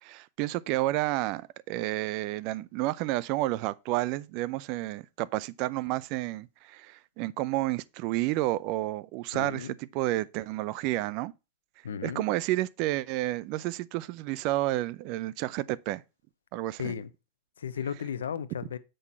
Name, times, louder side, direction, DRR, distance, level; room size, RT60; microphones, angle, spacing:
voice 1, 0.0-11.3 12.0-16.0 16.5-16.9, right 17 dB, 50° right, 0.5 m, -30 dB
voice 2, 9.3-9.7 11.8-12.2 16.8-17.1 17.6-18.8, left 7 dB, 75° left, 0.6 m, -35 dB
7.7 x 5.9 x 4.3 m
hypercardioid pair, 95°, 0 cm